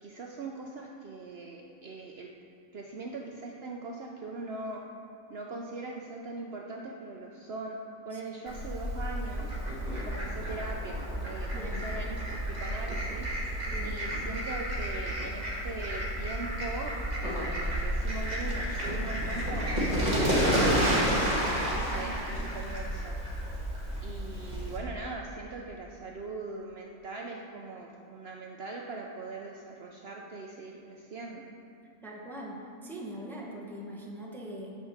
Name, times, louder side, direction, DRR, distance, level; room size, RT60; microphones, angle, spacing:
voice 1, 0.0-2.3 2.7-4.8 5.3-7.8 8.1-9.6 10.0-13.3 13.8-17.0 17.2-21.1 21.6-23.2 24.0-31.4, right 3 dB, 60° right, 0 dB, 0.7 m, -41 dB
voice 2, 8.1-8.4 11.5-12.0 13.6-14.1 21.9-22.1 32.0-34.7, right 1 dB, ahead, -3 dB, 0.7 m, -42 dB
Fowl, 8.5-24.8, equal, 30° right, 1.5 m, -31 dB
8.1 x 4.7 x 6.4 m, 2.6 s
omnidirectional pair, 1.4 m